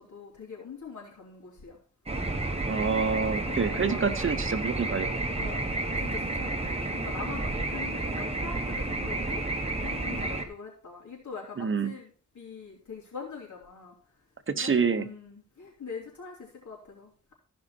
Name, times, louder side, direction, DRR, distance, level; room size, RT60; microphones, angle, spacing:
voice 1, 0.0-1.8 3.1-4.1 5.4-9.4 9.8-13.9 14.5-17.3, left 5 dB, 85° left, -3 dB, 3.8 m, -43 dB
sound 1, 2.1-10.4, right 2 dB, 20° right, 1.4 m, -31 dB
voice 2, 2.7-5.1 11.6-11.9 14.5-15.1, right 5 dB, 45° right, 10 dB, 0.9 m, -27 dB
14.5 x 5.5 x 4.4 m, 0.40 s
wide cardioid pair, 85°, 29 cm